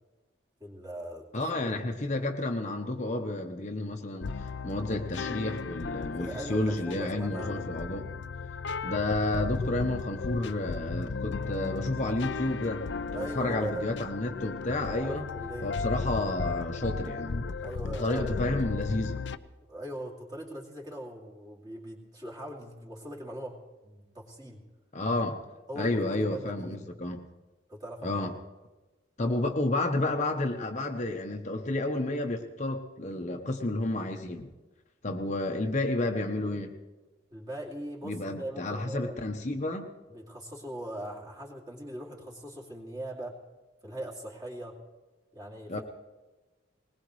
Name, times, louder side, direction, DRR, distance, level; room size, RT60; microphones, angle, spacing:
voice 1, 0.6-1.7 6.1-7.7 13.1-13.8 14.8-15.7 17.6-18.3 19.7-23.6 23.8-24.6 25.7-26.8 27.7-28.3 29.3-29.5 37.3-39.2 40.1-43.4 43.8-44.8 45.3-45.8, right 1 dB, 20° right, -2 dB, 2.6 m, -40 dB
voice 2, 1.3-8.1 8.8-12.8 13.1-15.2 15.6-17.5 17.8-19.3 24.9-25.4 25.8-27.2 28.0-28.3 29.2-34.5 35.0-36.7 38.0-39.9 45.7-45.8, left 2 dB, 35° left, 3 dB, 0.9 m, -31 dB
sound 1, 4.2-19.4, left 4 dB, 65° left, 0.5 m, -35 dB
20.5 x 20.0 x 3.2 m, 1.2 s
head